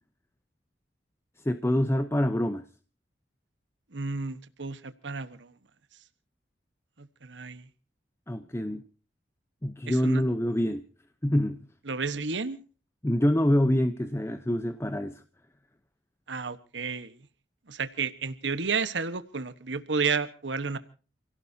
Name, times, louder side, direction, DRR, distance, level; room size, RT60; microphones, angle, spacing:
voice 1, 1.4-2.6 8.3-8.8 9.6-10.8 11.2-11.6 13.0-15.2, equal, 15° left, 0.8 m, -26 dB
voice 2, 3.9-5.5 7.0-7.6 9.9-10.2 11.9-12.6 16.3-17.1 17.7-20.8, right 4 dB, 80° right, 1.2 m, -31 dB
29.5 x 17.5 x 2.7 m
head